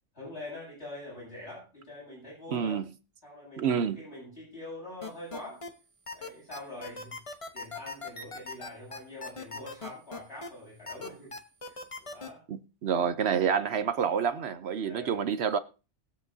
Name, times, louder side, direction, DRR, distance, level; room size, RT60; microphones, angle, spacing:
voice 1, 0.1-2.8 3.2-5.6 6.1-7.2 7.5-11.3 11.6-12.4 14.8-15.2, left 1 dB, 60° left, 8.3 m, -44 dB
voice 2, 2.5-2.8 3.6-4.0 12.5-15.6, right 7 dB, 65° right, 0.9 m, -28 dB
sound 1, 5.0-5.7 6.1-10.5 10.9-12.3, left 3 dB, 30° left, 1.0 m, -39 dB
20.5 x 7.8 x 2.7 m
omnidirectional pair, 1.3 m